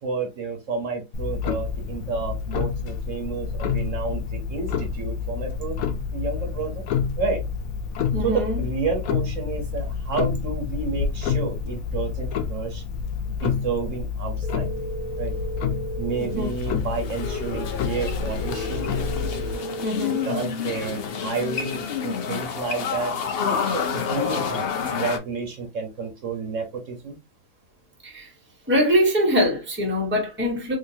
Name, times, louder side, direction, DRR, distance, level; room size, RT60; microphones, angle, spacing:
voice 1, 0.0-5.8 6.1-6.8 7.2-7.4 8.2-12.8 13.4-14.7 15.2-15.3 16.0-18.9 20.2-23.1 23.7-27.2, right 4 dB, 60° right, 1.3 m, -30 dB
Clock, 1.1-19.6, left 6 dB, 80° left, 1.1 m, -28 dB
voice 2, 8.1-8.6 16.2-16.5 19.8-20.2 28.0-28.3 28.7-30.8, equal, 10° right, 1.0 m, -23 dB
sound 1, 14.4-16.4 18.4-20.4, right 3 dB, 25° right, 0.3 m, -34 dB
sound 2, 16.2-25.2, left 6 dB, 55° left, 0.7 m, -29 dB
3.9 x 2.7 x 2.7 m
omnidirectional pair, 1.5 m